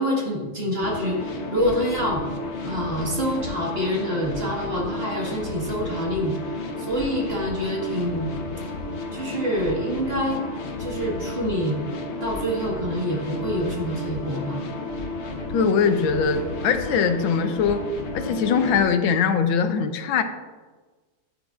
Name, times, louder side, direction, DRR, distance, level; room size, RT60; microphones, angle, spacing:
voice 1, 0.0-2.2 2.6-6.5 6.8-8.4 9.1-10.4 10.8-11.9 12.2-14.7, equal, 30° right, -3 dB, 1.8 m, -26 dB
sound 1, 0.8-18.8, left 2 dB, 55° left, 0.8 m, -32 dB
voice 2, 15.5-17.8 18.1-20.2, left 6 dB, 85° left, 8 dB, 1.5 m, -21 dB
10.5 x 10.0 x 2.4 m, 1.3 s
omnidirectional pair, 2.1 m